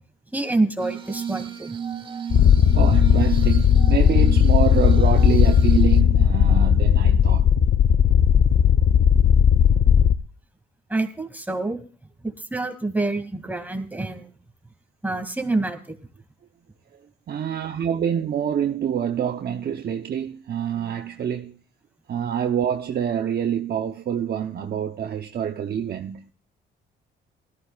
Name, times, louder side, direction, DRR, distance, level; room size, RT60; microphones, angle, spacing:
voice 1, 0.3-1.8 10.9-11.8 12.2-14.3 15.0-15.9, right 2 dB, 10° right, 2.3 m, -27 dB
Glass, 0.8-6.0, right 8 dB, 25° right, 1.2 m, -33 dB
voice 2, 2.2-7.5 16.9-17.0 17.3-21.6 22.1-26.3, right 9 dB, 55° right, 0.9 m, -26 dB
sound 1, 2.3-10.1, left 8 dB, 55° left, 0.7 m, -16 dB
19.0 x 14.5 x 2.4 m
cardioid pair, 90°, 20 cm